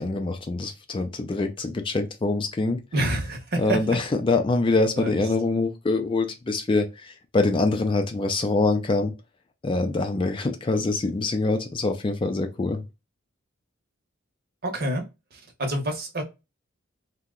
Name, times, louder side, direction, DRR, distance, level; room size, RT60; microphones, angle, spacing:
voice 1, 0.0-2.8 3.6-9.1 9.6-12.8, left 3 dB, 25° left, 0.3 m, -24 dB
voice 2, 2.9-3.8 5.0-5.1 14.6-15.0 15.6-16.2, right 1 dB, 45° right, 0.8 m, -26 dB
2.8 x 2.1 x 3.6 m
head